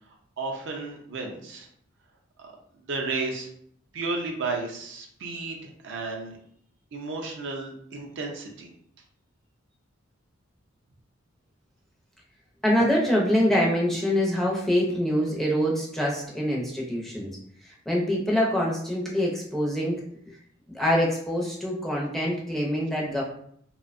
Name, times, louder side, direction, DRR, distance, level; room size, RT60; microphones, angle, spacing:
voice 1, 0.4-1.7 2.4-2.5 2.9-3.5 3.9-6.4 6.9-8.7, right 3 dB, 60° right, 1 dB, 0.5 m, -33 dB
voice 2, 12.6-17.3 17.9-20.0 20.7-23.2, equal, ahead, -4 dB, 0.5 m, -25 dB
2.6 x 2.1 x 2.4 m, 0.66 s
head